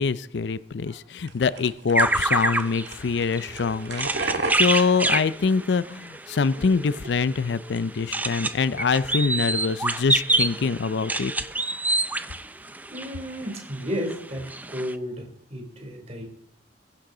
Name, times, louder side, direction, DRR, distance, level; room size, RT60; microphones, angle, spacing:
voice 1, 0.0-11.3, left 5 dB, 75° left, 17 dB, 0.5 m, -24 dB
sound 1, 1.3-6.1 6.4-7.1, right 3 dB, 85° right, 1.6 m, -35 dB
sound 2, 1.9-13.6 14.1-14.2 14.4-14.9, right 2 dB, 10° right, 0.5 m, -27 dB
voice 2, 12.9-16.2, equal, 35° right, 2 dB, 3.1 m, -34 dB
22.0 x 10.5 x 3.9 m, 0.73 s
head